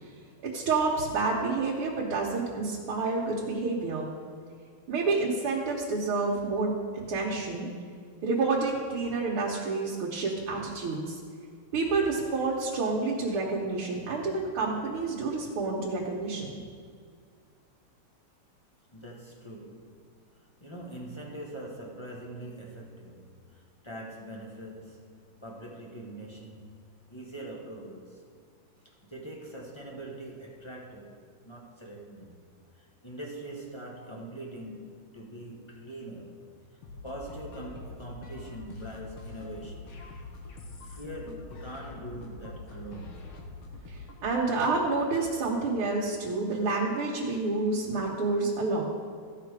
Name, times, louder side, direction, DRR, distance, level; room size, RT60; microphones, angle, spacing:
voice 1, 0.5-4.1 4.9-7.7 8.2-11.2 11.7-16.6 43.9-48.8, right 3 dB, 80° right, -4 dB, 2.0 m, -29 dB
voice 2, 18.9-20.1 20.3-26.8 27.1-28.3 28.8-32.3 32.7-36.3 37.0-40.0 40.8-43.3, right 1 dB, 35° left, -2 dB, 0.4 m, -43 dB
sound 1, 36.8-44.3, left 3 dB, 75° left, 2.0 m, -44 dB
14.5 x 5.9 x 4.7 m, 2.1 s
omnidirectional pair, 2.4 m